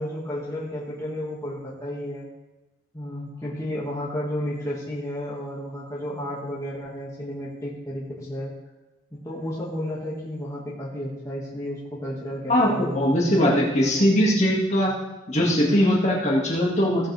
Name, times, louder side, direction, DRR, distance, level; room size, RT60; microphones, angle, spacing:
voice 1, 0.0-2.3 2.9-8.5 9.2-14.1, equal, 15° left, -7 dB, 2.1 m, -32 dB
voice 2, 12.5-14.9 15.3-17.1, equal, 35° left, -4 dB, 2.2 m, -21 dB
16.5 x 7.4 x 3.5 m, 1.1 s
head